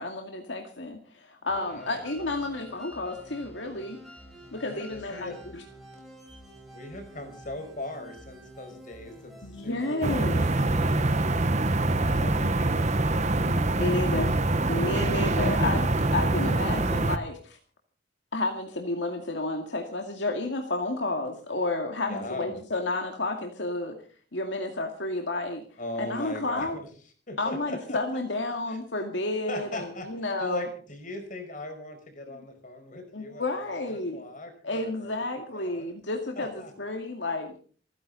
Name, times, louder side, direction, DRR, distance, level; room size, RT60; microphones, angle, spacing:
voice 1, 0.0-4.0 4.5-5.6 9.4-10.4 13.4-14.3 14.7-17.6 18.3-24.0 24.3-25.6 26.0-26.8 27.4-30.7 33.1-34.2 34.6-37.6, left 2 dB, 75° left, 3 dB, 2.2 m, -31 dB
voice 2, 1.5-2.0 4.6-5.4 6.7-9.4 9.6-11.2 11.8-13.7 15.1-15.4 22.1-22.5 25.8-26.9 27.3-28.0 28.7-28.8 29.5-30.1 30.4-35.2 35.5-35.9 36.4-36.7, left 2 dB, 45° left, 5 dB, 5.3 m, -39 dB
sound 1, 1.5-17.0, equal, ahead, 6.0 m, -49 dB
sound 2, 10.0-17.2, right 2 dB, 40° right, 1.1 m, -25 dB
28.5 x 10.5 x 4.0 m, 0.42 s
head